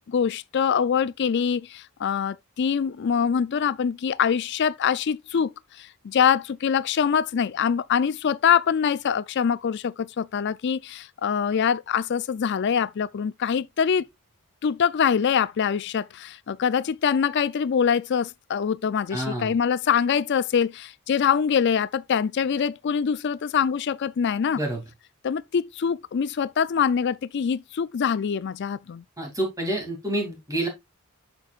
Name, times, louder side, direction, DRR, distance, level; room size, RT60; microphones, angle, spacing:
voice 1, 0.0-5.5 5.8-14.1 14.6-24.6 25.2-29.0, left 7 dB, 50° left, 0.4 m, -24 dB
voice 2, 19.1-19.5 24.5-24.8 29.2-30.7, right 1 dB, 15° right, 2.5 m, -28 dB
8.1 x 6.8 x 2.4 m
head